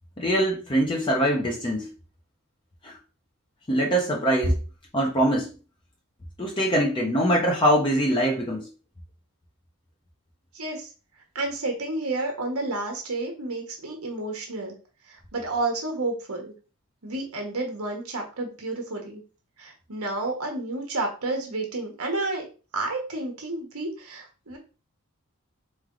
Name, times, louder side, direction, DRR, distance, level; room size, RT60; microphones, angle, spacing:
voice 1, 0.2-1.9 2.8-3.0 3.7-4.6 4.9-5.5 6.4-8.7, equal, 20° left, -1 dB, 0.8 m, -23 dB
voice 2, 10.5-10.9 11.3-14.7 15.0-16.5 17.0-19.2 19.6-22.4 22.7-24.6, right 2 dB, 70° right, 2 dB, 1.3 m, -30 dB
4.3 x 3.3 x 3.8 m, 0.35 s
head